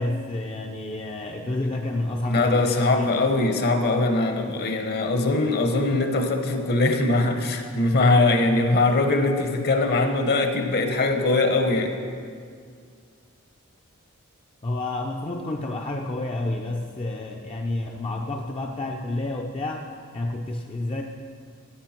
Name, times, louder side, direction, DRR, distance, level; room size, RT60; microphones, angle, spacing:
voice 1, 0.0-3.2 14.6-19.9 20.1-21.0, left 2 dB, 25° left, 1 dB, 0.5 m, -29 dB
voice 2, 2.2-11.9, left 2 dB, 50° left, 5 dB, 1.0 m, -21 dB
15.5 x 8.2 x 4.4 m, 2.2 s
head